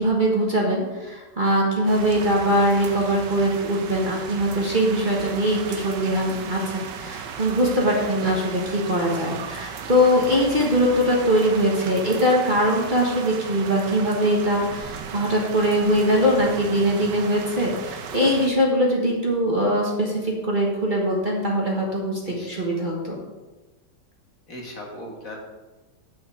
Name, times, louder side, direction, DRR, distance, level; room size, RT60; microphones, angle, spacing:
voice 1, 0.0-23.2, equal, 30° right, -2 dB, 1.4 m, -22 dB
sound 1, 1.9-18.5, right 6 dB, 80° right, 1.5 m, -36 dB
voice 2, 22.3-22.6 24.5-25.4, left 1 dB, 50° left, 0 dB, 1.7 m, -38 dB
9.0 x 6.5 x 4.9 m, 1.2 s
omnidirectional pair, 1.9 m